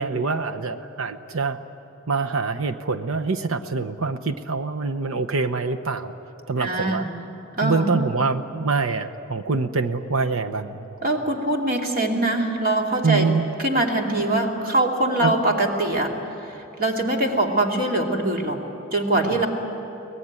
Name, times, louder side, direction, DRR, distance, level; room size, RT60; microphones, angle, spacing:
voice 1, 0.0-1.6 2.1-6.1 6.5-7.0 7.6-10.9 13.0-13.4 15.2-15.3 19.3-19.4, right 4 dB, 75° right, 8 dB, 0.9 m, -25 dB
voice 2, 6.6-7.1 7.6-7.9 11.0-13.3 13.6-16.2 16.4-18.6 18.9-19.5, right 2 dB, 45° right, 1 dB, 2.6 m, -23 dB
24.0 x 18.5 x 9.7 m, 2.8 s
head